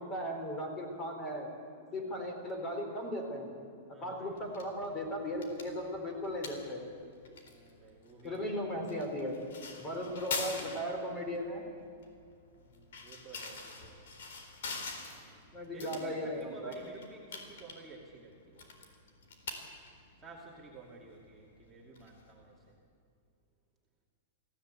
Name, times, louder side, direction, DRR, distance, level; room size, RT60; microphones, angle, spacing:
voice 1, 0.0-1.5 1.9-3.5 4.0-6.8 8.2-9.4 9.8-11.6 15.5-16.7, equal, 20° left, 3 dB, 3.8 m, -37 dB
voice 2, 3.9-4.6 7.4-8.6 9.8-10.4 12.6-14.1 15.0-18.7 20.2-22.7, right 4 dB, 10° right, -4 dB, 2.4 m, -53 dB
sound 1, 4.3-22.7, left 4 dB, 80° left, 4.0 m, -46 dB
23.0 x 16.0 x 8.4 m, 2.5 s
supercardioid pair, 165°, 0 cm